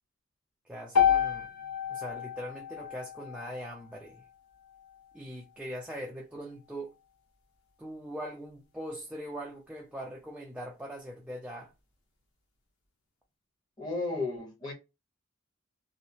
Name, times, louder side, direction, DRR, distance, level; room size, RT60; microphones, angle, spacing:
voice 1, 0.6-1.5 1.9-4.2 5.1-6.9 7.8-11.7, equal, 5° right, 0.3 m, -41 dB
sound 1, 1.0-5.1, left 8 dB, 85° left, 0.9 m, -30 dB
voice 2, 13.8-14.7, left 3 dB, 20° left, 1.0 m, -33 dB
2.7 x 2.0 x 2.7 m
head